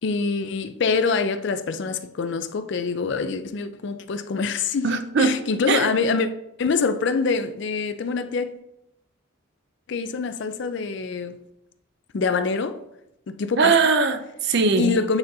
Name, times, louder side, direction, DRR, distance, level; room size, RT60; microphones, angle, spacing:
voice 1, 0.0-4.9 5.2-6.3 6.6-8.5 9.9-11.4 12.1-12.8 13.3-13.8 14.8-15.2, left 4 dB, 55° left, 0.4 m, -25 dB
voice 2, 4.8-5.9 13.6-14.9, right 4 dB, 55° right, 0.5 m, -21 dB
8.7 x 4.0 x 2.7 m
head